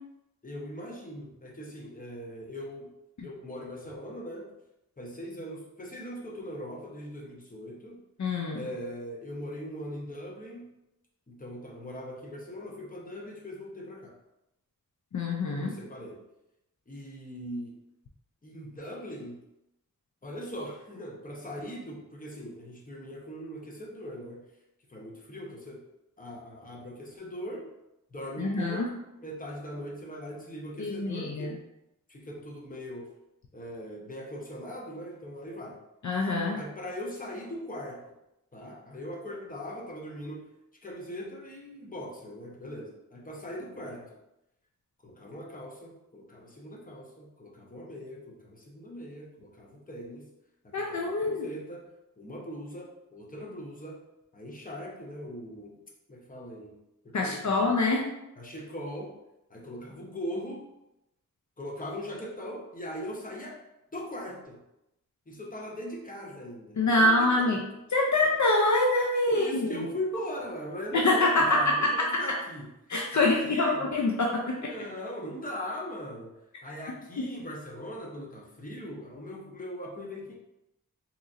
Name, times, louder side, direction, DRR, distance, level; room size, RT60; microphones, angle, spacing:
voice 1, 0.4-2.9 3.2-4.5 5.0-8.0 8.5-10.7 11.3-14.1 15.5-16.2 16.9-17.8 18.4-19.4 20.2-24.4 24.9-25.8 26.2-27.7 28.1-31.5 32.1-33.1 33.5-35.8 36.6-38.0 38.5-40.5 40.8-44.2 45.0-50.3 50.6-51.9 52.2-54.0 54.3-55.8 56.1-56.8 57.0-57.6 58.4-59.1 59.5-60.7 61.6-63.6 63.9-64.6 65.3-67.6 69.3-72.7 73.1-73.9 74.6-76.4 76.6-80.4, equal, 25° left, -2 dB, 0.8 m, -40 dB
voice 2, 8.2-8.6 15.1-15.7 28.4-28.9 30.8-31.6 36.0-36.6 50.7-51.4 57.1-58.1 66.8-67.6 67.9-69.7 70.9-71.9 72.9-74.7 77.2-77.3, left 2 dB, 55° left, -1 dB, 0.5 m, -25 dB
3.9 x 3.0 x 2.5 m, 0.88 s
wide cardioid pair, 80°, 34 cm